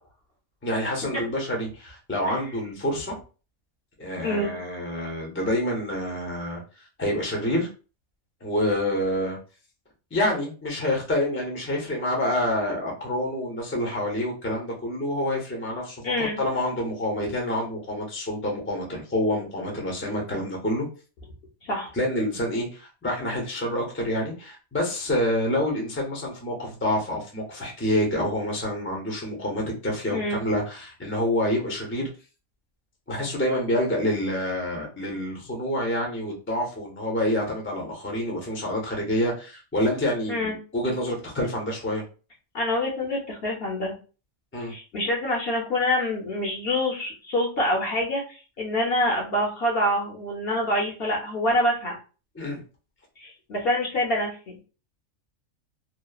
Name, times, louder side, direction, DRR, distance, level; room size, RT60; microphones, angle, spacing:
voice 1, 0.6-3.2 4.0-7.7 8.4-9.4 10.1-20.9 21.9-32.1 33.1-42.0 44.5-44.7 52.3-52.6, left 1 dB, 15° left, -1 dB, 0.5 m, -27 dB
voice 2, 16.0-16.4 21.6-21.9 30.1-30.4 40.3-40.6 42.5-44.0 44.7-52.0 53.2-54.6, left 1 dB, 55° left, -1 dB, 0.8 m, -26 dB
2.9 x 2.0 x 2.3 m, 0.35 s
omnidirectional pair, 1.4 m